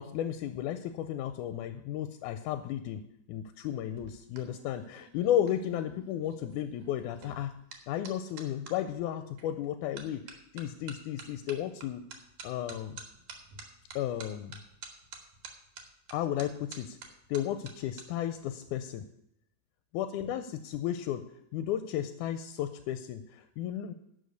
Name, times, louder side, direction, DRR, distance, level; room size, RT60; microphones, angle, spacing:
voice 1, 0.0-3.0 3.3-7.5 7.9-12.0 12.4-13.0 14.0-14.6 16.1-17.0 17.3-19.1 19.9-23.9, left 11 dB, 85° left, 10 dB, 2.0 m, -34 dB
sound 1, 3.8-8.8 9.4-9.7 10.0-18.0 18.3-18.7, right 5 dB, 70° right, 2.8 m, -49 dB
11.5 x 5.3 x 8.0 m, 0.79 s
omnidirectional pair, 3.6 m